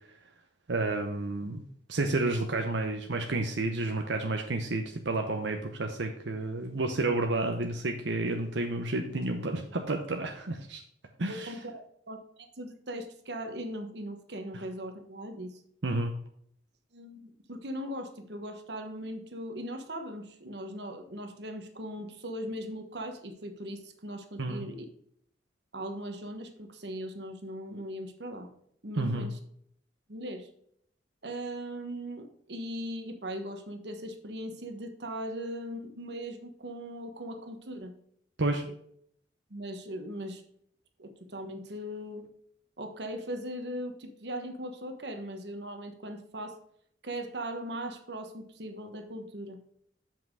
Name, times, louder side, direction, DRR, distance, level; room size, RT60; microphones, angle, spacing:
voice 1, 0.7-1.6 1.9-10.8 11.2-11.5 15.8-16.1 24.4-24.6 29.0-29.3 38.4-38.6, right 2 dB, 90° right, 3 dB, 0.9 m, -30 dB
voice 2, 11.3-15.6 16.9-24.9 25.7-28.5 28.8-29.4 30.1-30.5 31.2-37.9 39.5-40.4 41.0-42.3 42.8-46.6 47.0-49.6, equal, 70° right, 6 dB, 1.3 m, -39 dB
7.5 x 5.9 x 4.8 m, 0.68 s
head